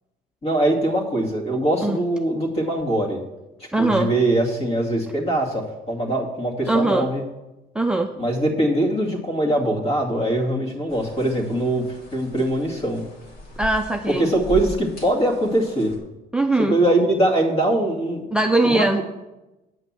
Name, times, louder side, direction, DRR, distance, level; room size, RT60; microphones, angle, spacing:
voice 1, 0.4-3.2 3.6-7.2 8.2-11.9 12.1-13.0 14.1-15.9 16.6-18.3 18.6-19.0, right 1 dB, 35° left, 0 dB, 2.3 m, -22 dB
voice 2, 3.7-4.1 6.7-7.1 7.7-8.1 13.6-14.3 16.3-16.8 18.3-19.0, right 2 dB, 5° right, 4 dB, 0.5 m, -21 dB
sound 1, 10.9-16.0, equal, 65° left, 2.5 m, -38 dB
9.1 x 5.9 x 7.4 m, 1.0 s
cardioid pair, 110°, 17 cm